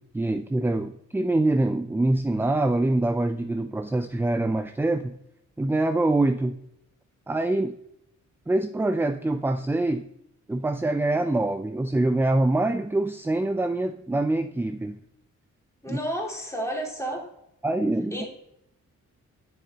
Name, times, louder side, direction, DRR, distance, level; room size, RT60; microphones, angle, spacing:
voice 1, 0.0-5.2 5.6-6.6 7.3-7.8 8.5-10.1 10.5-15.0 15.9-16.0 17.6-18.2, right 2 dB, 10° right, 9 dB, 0.3 m, -25 dB
voice 2, 15.8-17.2 18.1-18.3, right 1 dB, 10° left, -2 dB, 2.6 m, -31 dB
7.2 x 6.6 x 2.8 m, 0.80 s
cardioid pair, 70°, 31 cm